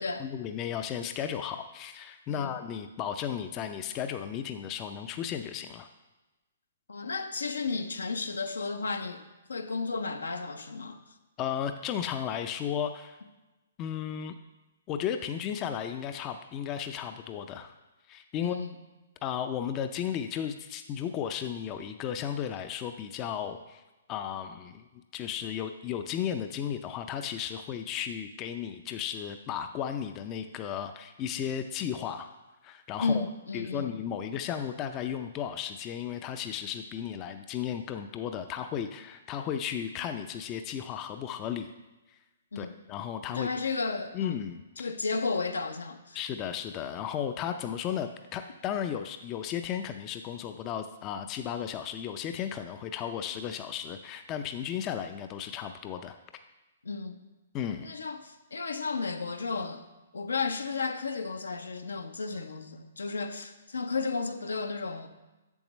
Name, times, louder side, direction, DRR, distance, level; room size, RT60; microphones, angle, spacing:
voice 1, 0.2-5.9 11.4-13.2 13.8-14.3 14.9-17.7 18.1-18.6 19.2-23.8 24.1-24.9 25.1-32.3 32.6-33.3 33.5-41.7 42.6-43.5 44.1-44.9 46.1-56.2 57.5-57.9, left 9 dB, 30° left, 0.4 m, -34 dB
voice 2, 6.9-9.2 9.5-11.0 18.4-18.8 33.0-33.9 42.5-42.8 43.3-44.4 44.8-46.2 56.8-57.2 57.8-59.8 60.1-65.1, left 4 dB, 80° left, 0.7 m, -33 dB
7.8 x 7.1 x 3.1 m
hypercardioid pair, 130°, 0 cm